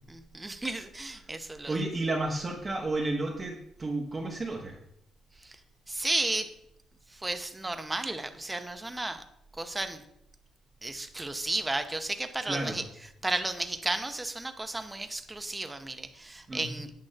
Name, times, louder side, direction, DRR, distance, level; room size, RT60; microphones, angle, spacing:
voice 1, 0.1-1.8 5.4-5.6 5.9-6.5 7.1-9.2 9.6-10.0 10.8-12.8 13.2-16.9, right 2 dB, 15° right, 8 dB, 0.7 m, -33 dB
voice 2, 1.7-4.8 12.4-12.8 16.5-16.8, right 2 dB, 30° right, -1 dB, 1.1 m, -32 dB
8.7 x 3.1 x 6.4 m, 0.79 s
cardioid pair, 90°, 0 cm